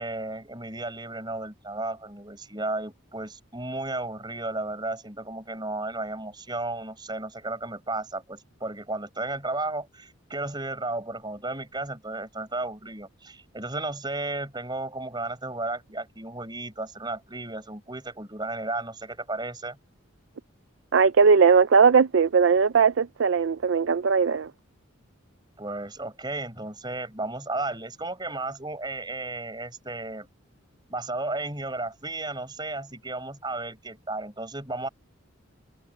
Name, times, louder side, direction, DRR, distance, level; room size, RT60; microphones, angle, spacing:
voice 1, 0.0-19.8 25.6-30.3 30.9-34.9, right 2 dB, 20° right, 5.7 m, -34 dB
voice 2, 20.9-24.5, right 5 dB, 60° right, 0.4 m, -19 dB
head